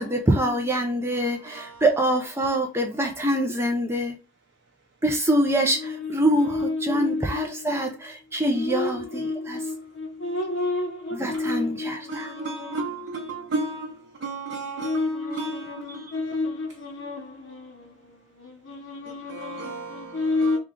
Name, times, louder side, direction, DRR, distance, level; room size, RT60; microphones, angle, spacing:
voice 1, 0.0-4.2 5.0-9.7 11.1-12.3 15.9-16.0, right 1 dB, 10° right, 0.4 m, -25 dB
voice 2, 6.0-7.7 8.5-12.8 14.6-20.6, left 3 dB, 75° left, 0.8 m, -30 dB
voice 3, 12.1-16.1 19.3-20.6, right 3 dB, 65° right, 0.7 m, -34 dB
3.5 x 2.3 x 3.7 m
head